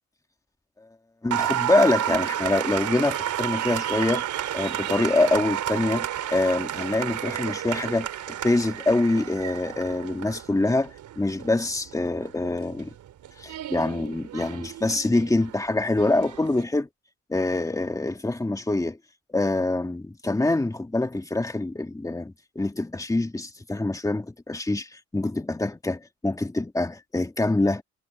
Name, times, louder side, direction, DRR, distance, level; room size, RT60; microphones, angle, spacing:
voice 1, 1.2-4.3 4.5-12.9 13.4-16.9 17.3-19.0 19.3-27.8, left 2 dB, 10° left, 1.9 m, -25 dB
Applause, 1.3-16.6, right 11 dB, 75° right, 3.8 m, -31 dB
cardioid pair, 90°, 30 cm